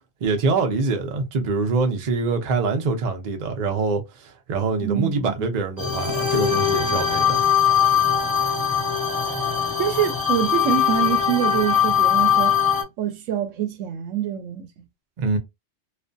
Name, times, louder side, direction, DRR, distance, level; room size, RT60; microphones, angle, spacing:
voice 1, 0.2-7.4 15.2-15.4, right 4 dB, 50° right, 0.6 m, -24 dB
voice 2, 4.8-5.5 9.8-12.6 13.0-14.9, right 10 dB, 80° right, 0.9 m, -25 dB
sound 1, 5.8-12.8, left 8 dB, 25° left, 0.5 m, -21 dB
2.5 x 2.4 x 2.2 m
omnidirectional pair, 1.3 m